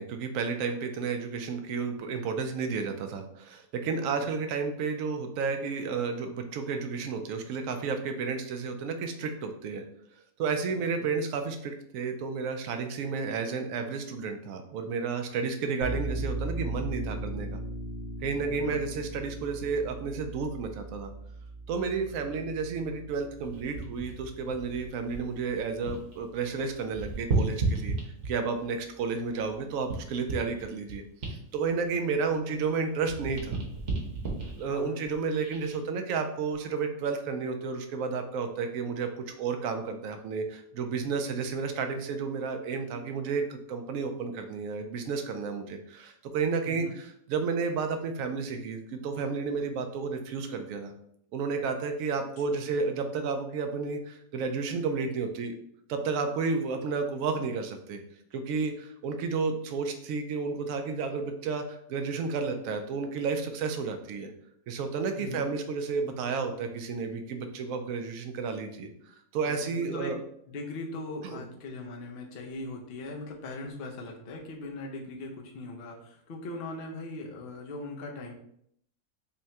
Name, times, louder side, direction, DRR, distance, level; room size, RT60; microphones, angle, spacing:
voice 1, 0.0-9.8 10.4-17.6 18.2-21.1 21.7-27.9 28.2-33.6 34.5-50.9 51.3-55.5 55.9-58.0 58.3-64.3 64.7-68.9 69.3-70.2 71.2-71.4, right 5 dB, 70° right, 6 dB, 0.8 m, -32 dB
voice 2, 4.0-4.3 10.7-11.1 18.5-18.8 32.4-32.5 34.7-35.0 46.7-46.9 52.5-52.6 65.2-65.5 69.4-70.2 70.5-78.3, left 2 dB, 65° left, 0 dB, 0.6 m, -40 dB
sound 1, 15.8-27.1, right 1 dB, 30° right, 0.8 m, -39 dB
sound 2, 23.4-26.2 26.5-28.6 29.1-32.7 33.0-35.8 36.3-36.5, right 3 dB, 50° right, 1.1 m, -34 dB
5.4 x 2.2 x 2.8 m, 0.70 s
omnidirectional pair, 1.7 m